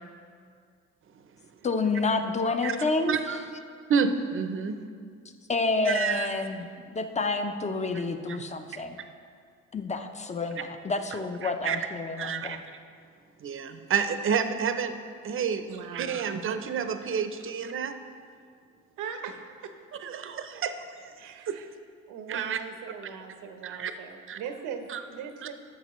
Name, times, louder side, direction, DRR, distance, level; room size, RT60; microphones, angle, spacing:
voice 1, 1.6-3.4 5.5-9.0 9.7-12.6, left 3 dB, 20° left, 7 dB, 0.6 m, -29 dB
voice 2, 3.9-4.8 5.9-6.3 7.9-8.0 8.3-8.4 11.4-11.8 12.2-12.6 13.4-15.0 15.2-15.7 15.9-17.9 20.0-20.7 21.5-21.6 22.3-22.6 23.6-23.9 24.3-24.4 24.9-25.0, right 6 dB, 40° right, 9 dB, 0.6 m, -29 dB
voice 3, 15.7-16.2 19.0-19.7 21.2-21.7 22.1-25.5, right 7 dB, 85° right, 7 dB, 0.8 m, -40 dB
12.0 x 7.4 x 3.1 m, 2.2 s
cardioid pair, 85°, 31 cm